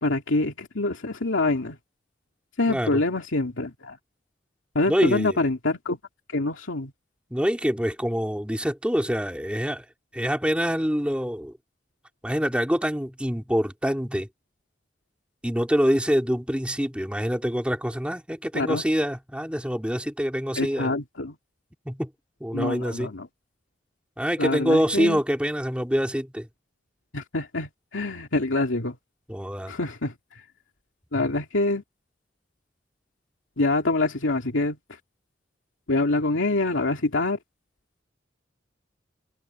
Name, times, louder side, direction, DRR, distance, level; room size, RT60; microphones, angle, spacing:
voice 1, 0.0-1.8 2.6-4.0 4.7-6.0 6.3-6.9 18.5-18.8 20.6-21.3 22.5-23.3 24.4-25.2 27.1-29.0 29.7-30.4 31.1-31.8 33.6-34.8 35.9-37.4, left 2 dB, 90° left, 2.5 m, -25 dB
voice 2, 2.7-3.0 4.9-5.4 7.3-9.8 10.1-11.5 12.2-14.3 15.4-20.9 21.8-22.1 22.4-23.1 24.2-26.5 29.3-29.7, equal, 5° right, 3.2 m, -25 dB
head